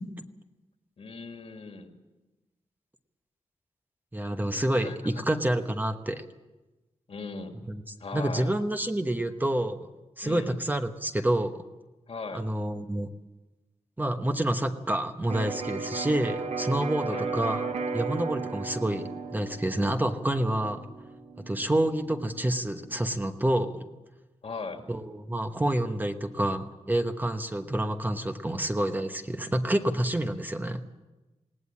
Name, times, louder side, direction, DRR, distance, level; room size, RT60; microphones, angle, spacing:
voice 1, 1.0-1.9 4.5-5.5 7.1-7.6 8.0-8.5 10.2-10.6 12.1-12.4 17.0-17.3 24.4-24.8, left 4 dB, 60° left, 5 dB, 2.3 m, -39 dB
voice 2, 4.1-6.2 7.7-7.8 8.1-9.9 10.2-11.6 12.3-13.1 14.0-17.7 17.9-20.8 21.5-23.9 24.9-30.8, right 1 dB, 15° right, 6 dB, 1.1 m, -28 dB
Electric guitar, 15.3-23.1, right 4 dB, 80° right, 1.8 m, -36 dB
20.0 x 17.5 x 8.6 m, 1.1 s
wide cardioid pair, 120°, 12 cm